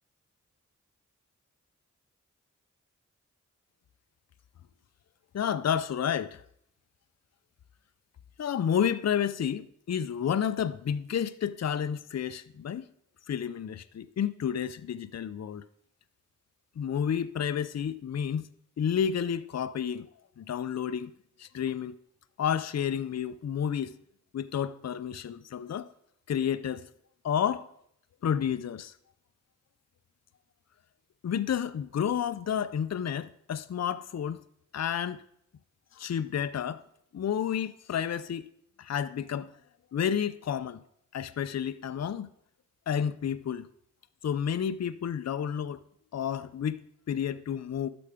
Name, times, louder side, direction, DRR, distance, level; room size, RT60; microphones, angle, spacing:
voice 1, 5.3-6.4 8.4-12.8 13.3-15.6 16.8-18.5 18.8-20.1 20.4-21.1 21.4-22.0 22.4-23.9 24.3-25.9 26.3-26.9 27.2-27.7 28.2-28.9 31.2-34.4 34.7-35.2 35.9-36.8 37.1-38.5 38.8-39.5 39.9-40.8 41.1-42.3 42.9-43.7 44.2-45.8 46.1-47.9, left 8 dB, 55° left, 0.5 m, -30 dB
12.0 x 6.9 x 4.9 m
wide cardioid pair, 70°, 31 cm